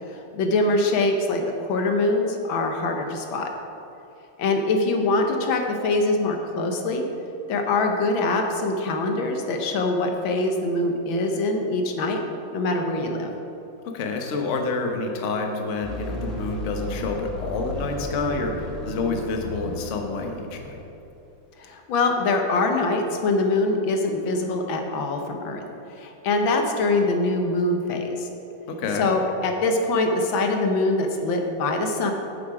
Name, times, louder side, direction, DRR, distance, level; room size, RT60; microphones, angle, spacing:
voice 1, 0.1-3.5 4.4-7.0 7.5-12.2 12.5-13.3 21.6-25.6 25.9-28.3 29.0-32.1, left 2 dB, 80° left, 4 dB, 1.7 m, -23 dB
voice 2, 13.8-20.8 28.7-29.1, left 3 dB, 50° left, 3 dB, 1.0 m, -28 dB
sound 1, 15.8-21.1, left 1 dB, ahead, 2.0 m, -35 dB
8.9 x 7.9 x 4.8 m, 2.9 s
omnidirectional pair, 2.1 m